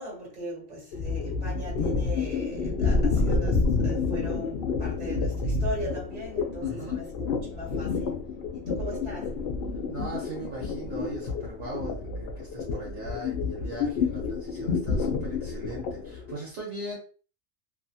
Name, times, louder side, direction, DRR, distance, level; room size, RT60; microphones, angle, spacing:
voice 1, 0.0-8.2 8.5-9.3, right 1 dB, 30° right, 1.6 m, -39 dB
sound 1, 0.9-16.3, left 4 dB, 60° left, 0.7 m, -29 dB
voice 2, 6.6-7.0 9.9-17.0, right 2 dB, 65° right, 1.2 m, -39 dB
2.8 x 2.6 x 2.3 m
omnidirectional pair, 1.4 m